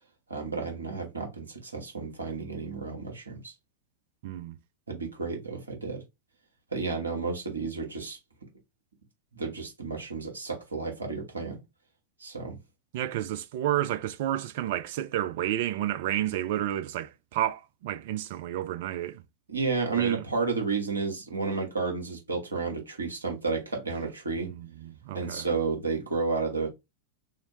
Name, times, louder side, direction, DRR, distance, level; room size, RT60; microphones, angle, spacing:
voice 1, 0.3-3.5 4.9-6.0 6.7-8.2 9.3-11.6 12.2-12.6 19.5-24.5 25.1-26.7, right 4 dB, 75° right, 1.2 m, -31 dB
voice 2, 4.2-4.6 12.9-19.2 20.0-20.2 24.4-25.5, right 12 dB, 50° right, 0.4 m, -31 dB
2.8 x 2.7 x 3.0 m
figure-of-eight pair, 90°, 0 cm